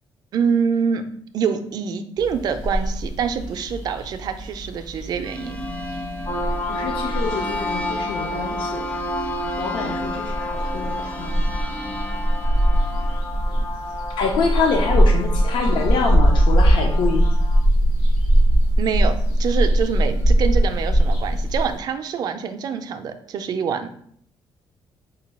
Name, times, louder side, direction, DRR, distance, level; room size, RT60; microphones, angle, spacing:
voice 1, 0.3-1.0 1.3-5.7 18.8-23.9, right 6 dB, 50° right, 8 dB, 0.4 m, -25 dB
sound 1, 2.2-21.8, right 1 dB, 85° left, 1.6 m, -21 dB
sound 2, 5.2-13.2, left 1 dB, 15° left, 0.5 m, -36 dB
sound 3, 6.2-17.6, left 2 dB, 50° left, 1.0 m, -31 dB
voice 2, 6.7-8.8 9.6-11.3 14.2-17.3, left 4 dB, 65° left, 2 dB, 0.6 m, -25 dB
5.2 x 2.2 x 4.1 m, 0.64 s
cardioid pair, 160°, 9 cm